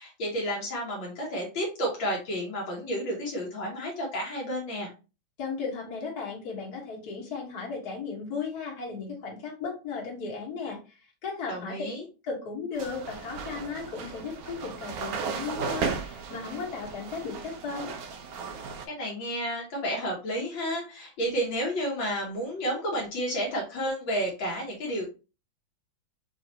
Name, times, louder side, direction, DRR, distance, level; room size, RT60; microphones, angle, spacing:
voice 1, 0.0-4.9 11.5-12.1 18.9-25.0, equal, 70° left, -1 dB, 2.0 m, -31 dB
voice 2, 5.4-11.8 12.2-18.0, left 5 dB, 50° left, -2 dB, 1.9 m, -36 dB
sound 1, 12.7-18.9, right 5 dB, 65° right, 0.9 m, -35 dB
5.4 x 3.2 x 2.9 m, 0.31 s
omnidirectional pair, 2.2 m